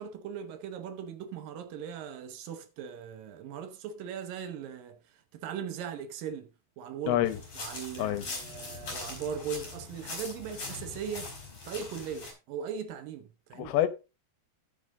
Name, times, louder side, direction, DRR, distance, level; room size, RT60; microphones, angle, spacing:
voice 1, 0.0-5.0 5.3-6.5 6.8-7.2 7.6-11.3 11.7-13.8, right 7 dB, 70° right, 2.5 m, -39 dB
voice 2, 7.1-7.4 8.0-8.3 13.6-13.9, left 13 dB, 85° left, 2.9 m, -26 dB
sound 1, 7.3-12.3, left 3 dB, 40° left, 4.3 m, -41 dB
13.5 x 5.9 x 3.7 m
omnidirectional pair, 4.4 m